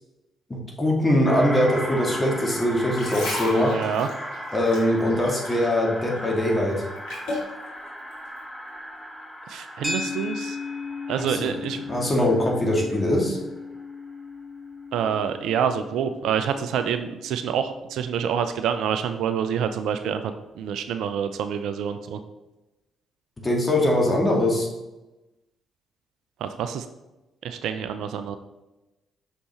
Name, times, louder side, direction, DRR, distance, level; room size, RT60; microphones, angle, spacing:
voice 1, 0.5-3.7 4.5-6.8 11.2-11.5 11.8-13.4 23.4-24.7, left 1 dB, 25° left, -2 dB, 2.1 m, -22 dB
sound 1, 1.2-13.9, equal, 5° left, 0.9 m, -37 dB
sound 2, 2.7-5.8 6.1-7.5 8.1-8.3, left 1 dB, 70° left, 2.2 m, -33 dB
voice 2, 3.6-4.1 9.5-10.6 11.1-11.8 14.9-22.2 26.4-26.8 27.4-28.4, right 8 dB, 65° right, 9 dB, 0.4 m, -27 dB
sound 3, 9.8-18.3, left 4 dB, 15° right, 1.7 m, -36 dB
6.4 x 5.3 x 3.0 m, 1.0 s
hypercardioid pair, 45°, 0 cm